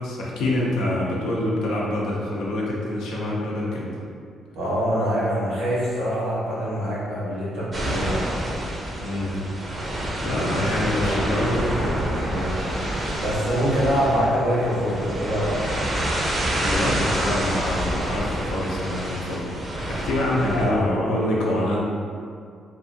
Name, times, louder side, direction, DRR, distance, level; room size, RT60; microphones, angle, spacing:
voice 1, 0.0-4.0 9.0-9.4 10.2-11.7 16.6-19.6 19.9-21.8, left 1 dB, 85° left, -4 dB, 0.5 m, -26 dB
voice 2, 4.5-8.3 10.3-11.2 11.5-15.8 20.4-21.1, equal, 90° right, -8 dB, 1.1 m, -26 dB
sound 1, 7.7-20.7, right 1 dB, 30° right, 0.5 m, -27 dB
2.6 x 2.5 x 2.6 m, 2.3 s
cardioid pair, 90°, 0 cm